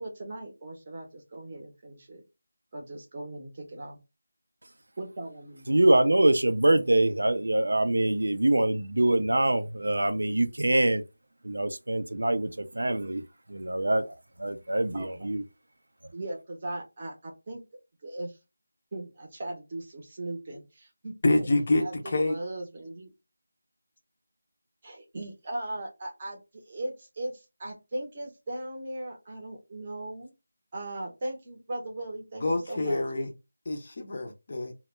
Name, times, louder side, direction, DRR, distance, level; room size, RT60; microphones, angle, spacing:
voice 1, 0.0-2.2 2.7-4.0 5.0-5.6 14.9-15.3 16.1-17.6 18.0-18.4 18.9-21.5 21.8-23.1 24.8-30.3 30.7-33.0, right 1 dB, 20° right, 0.6 m, -38 dB
voice 2, 5.7-11.0 11.5-12.5 12.8-13.2 13.5-14.0 14.4-15.4, right 1 dB, 80° right, 0.4 m, -24 dB
voice 3, 21.2-22.3 32.4-33.3 33.7-34.7, left 2 dB, 30° left, 0.4 m, -26 dB
2.1 x 2.0 x 3.1 m
figure-of-eight pair, 175°, 0 cm